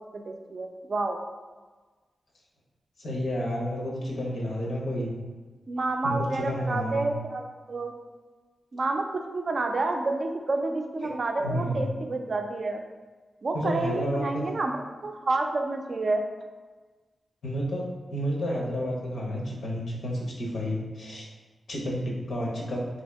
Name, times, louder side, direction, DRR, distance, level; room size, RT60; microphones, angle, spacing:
voice 1, 0.1-1.2 5.7-7.9 8.7-12.8 13.4-16.2, right 3 dB, 50° right, 3 dB, 0.3 m, -29 dB
voice 2, 3.0-5.1 6.0-7.1 11.4-11.9 13.5-14.4 17.4-17.8 18.1-21.2 21.7-22.8, equal, 80° left, -3 dB, 0.8 m, -30 dB
2.8 x 2.6 x 3.3 m, 1.3 s
wide cardioid pair, 100°, 0 cm